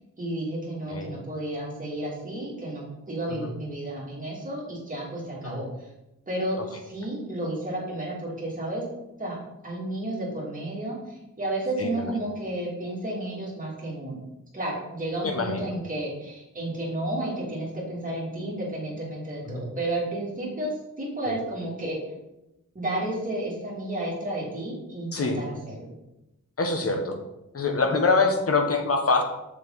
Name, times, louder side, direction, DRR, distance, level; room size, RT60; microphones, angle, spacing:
voice 1, 0.2-5.9 6.3-8.8 9.2-9.4 9.6-14.2 14.5-22.0 22.7-25.9, right 1 dB, 25° right, -5 dB, 2.8 m, -32 dB
voice 2, 0.9-1.2 3.3-3.5 5.4-5.6 11.8-12.1 15.2-15.7 19.4-19.6 21.2-21.4 25.1-25.4 26.6-27.2 27.5-29.2, left 3 dB, 50° left, 4 dB, 1.2 m, -25 dB
6.8 x 6.2 x 4.0 m, 0.91 s
wide cardioid pair, 135°, 31 cm